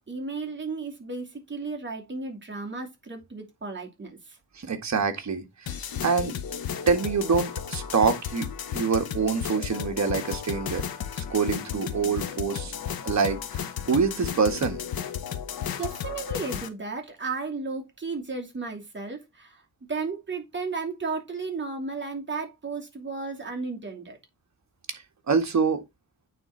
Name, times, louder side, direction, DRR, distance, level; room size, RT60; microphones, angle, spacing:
voice 1, 0.1-4.4 15.8-19.6 19.9-24.2, right 4 dB, 30° right, 2.6 m, -34 dB
voice 2, 4.6-5.8 6.0-6.4 6.9-8.5 8.7-10.8 11.2-12.7 13.0-14.8 25.3-25.8, right 5 dB, 50° right, 1.8 m, -25 dB
sound 1, 5.7-16.7, left 8 dB, 80° left, 1.1 m, -34 dB
8.9 x 3.9 x 4.5 m
wide cardioid pair, 110°, 35 cm